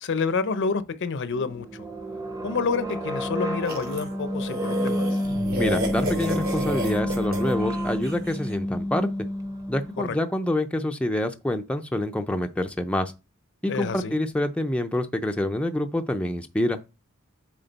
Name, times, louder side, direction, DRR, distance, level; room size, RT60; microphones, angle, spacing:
voice 1, 0.0-1.7 2.4-5.1 10.0-10.1 13.7-14.1, left 4 dB, 55° left, 0.6 m, -28 dB
sound 1, 1.3-10.1, equal, 15° right, 0.8 m, -29 dB
sound 2, 3.7-8.4, equal, 65° right, 2.8 m, -32 dB
sound 3, 5.2-9.1, right 1 dB, 50° right, 3.1 m, -37 dB
voice 2, 5.6-9.1 9.7-13.1 13.6-16.8, left 1 dB, 5° left, 0.4 m, -26 dB
7.8 x 3.7 x 4.0 m
head